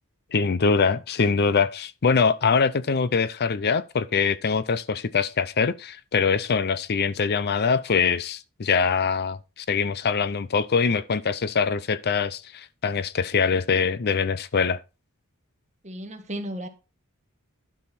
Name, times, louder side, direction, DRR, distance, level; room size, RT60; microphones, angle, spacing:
voice 1, 0.3-14.8, left 5 dB, 45° left, 0.5 m, -23 dB
voice 2, 15.8-16.7, right 1 dB, 30° right, 1.6 m, -34 dB
12.0 x 6.4 x 4.3 m
head